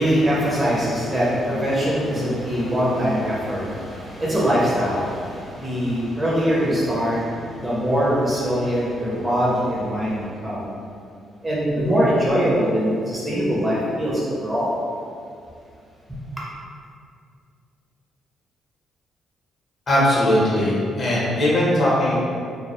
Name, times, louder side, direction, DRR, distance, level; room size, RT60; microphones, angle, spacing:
voice 1, 0.0-10.7 11.4-14.8 16.1-16.2, equal, 15° right, -6 dB, 0.6 m, -22 dB
voice 2, 19.9-22.1, left 1 dB, 40° left, -7 dB, 0.8 m, -19 dB
2.1 x 2.1 x 2.9 m, 2.3 s
cardioid pair, 90°, 0 cm